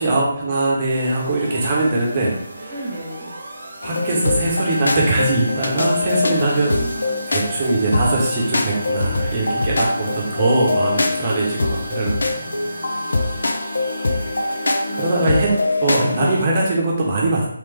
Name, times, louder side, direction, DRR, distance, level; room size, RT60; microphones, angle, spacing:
voice 1, 0.0-2.8 3.8-6.7 7.3-12.4 15.0-15.5 15.8-17.5, right 2 dB, 30° right, -4 dB, 1.0 m, -21 dB
sound 1, 0.9-15.5, right 3 dB, 50° right, 0.9 m, -37 dB
voice 2, 2.7-3.3 6.3-7.4 12.2-13.2 14.9-15.2, right 1 dB, ahead, -13 dB, 0.8 m, -36 dB
sound 2, 3.8-16.4, left 2 dB, 65° left, 0.5 m, -23 dB
3.4 x 3.3 x 3.4 m, 0.69 s
figure-of-eight pair, 150°, 0 cm